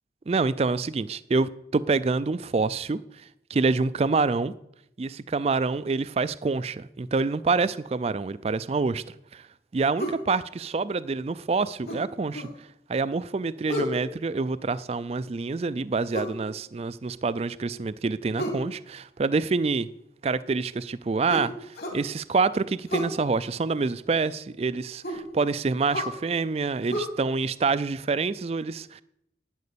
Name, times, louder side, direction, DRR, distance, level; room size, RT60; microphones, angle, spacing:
voice 1, 0.3-4.5 5.0-9.0 9.3-9.5 9.7-19.9 20.2-29.0, right 4 dB, 35° right, 0.3 m, -27 dB
sound 1, 10.0-10.2 11.9-12.6 13.7-14.0 16.1-16.4 18.4-18.7 21.3-22.0 22.9-23.2 25.0-25.3 25.9-26.2 26.9-27.0, equal, 55° left, 2.5 m, -31 dB
11.0 x 9.4 x 6.8 m
head